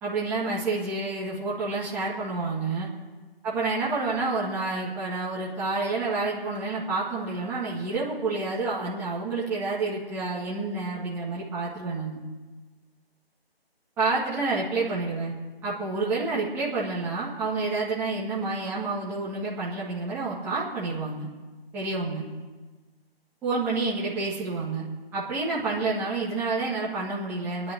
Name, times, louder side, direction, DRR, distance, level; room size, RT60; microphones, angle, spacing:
voice 1, 0.0-2.9 3.4-12.2 14.0-15.3 15.6-21.3 21.7-22.3 23.4-24.9 25.1-27.7, right 3 dB, 5° right, -8 dB, 1.8 m, -29 dB
25.0 x 11.0 x 4.6 m, 1.3 s
figure-of-eight pair, 165°, 31 cm